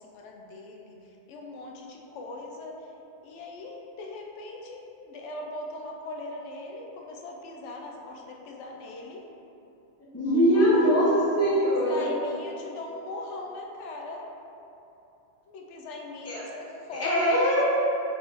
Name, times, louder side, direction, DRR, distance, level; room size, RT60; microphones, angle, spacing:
voice 1, 0.0-2.9 3.2-9.2 10.3-10.9 11.7-14.3 15.5-17.2 17.8-18.0, left 2 dB, 75° left, 0 dB, 0.8 m, -40 dB
voice 2, 10.1-12.1 16.3-16.4 16.9-17.7, equal, 20° left, -5 dB, 0.4 m, -22 dB
4.3 x 3.3 x 2.9 m, 2.9 s
omnidirectional pair, 1.3 m